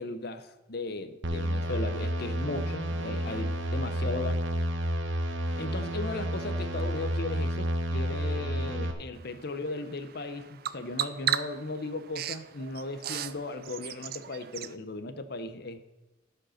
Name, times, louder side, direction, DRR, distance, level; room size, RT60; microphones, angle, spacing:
voice 1, 0.0-4.4 5.6-15.8, left 2 dB, 55° left, 10 dB, 0.8 m, -36 dB
sound 1, 1.2-8.9, equal, 70° right, 1.2 m, -30 dB
Bird vocalization bird call bird song, 9.1-14.7, right 10 dB, 50° right, 0.4 m, -36 dB
13.0 x 5.3 x 6.4 m, 1.1 s
head